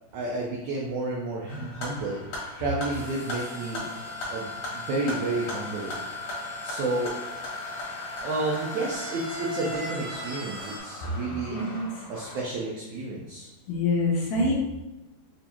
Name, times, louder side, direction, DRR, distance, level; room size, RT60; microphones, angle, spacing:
voice 1, 0.1-2.2 2.6-3.8 4.3-5.9 6.6-7.1 8.2-11.6 12.1-13.5, right 2 dB, 90° right, -3 dB, 1.7 m, -31 dB
sound 1, 1.5-12.4, left 2 dB, 60° left, 2.4 m, -38 dB
sound 2, 2.9-10.8, left 2 dB, 70° right, 1.7 m, -39 dB
voice 2, 11.5-11.9 13.7-14.5, left 2 dB, 80° left, -2 dB, 2.0 m, -25 dB
6.6 x 2.6 x 2.9 m, 1.0 s
omnidirectional pair, 4.2 m